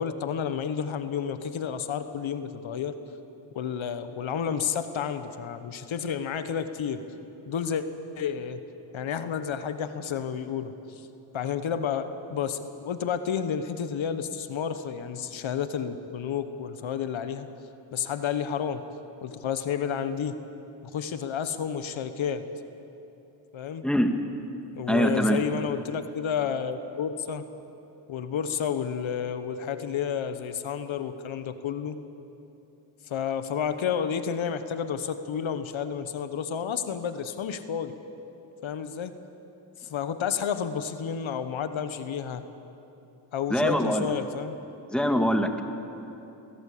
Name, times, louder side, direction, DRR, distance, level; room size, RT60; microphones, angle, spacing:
voice 1, 0.0-2.9 3.5-7.0 7.5-7.8 8.2-8.6 8.9-11.1 11.3-17.5 17.9-18.8 19.2-20.4 20.8-22.4 23.5-23.9 24.8-27.5 28.1-32.0 33.1-37.9 38.6-39.1 39.8-42.4 43.3-44.6, left 7 dB, 85° left, 10 dB, 1.2 m, -31 dB
voice 2, 24.9-25.4 43.5-44.1 44.9-45.6, equal, ahead, 5 dB, 2.2 m, -23 dB
22.0 x 17.0 x 8.5 m, 2.9 s
cardioid pair, 55°, 46 cm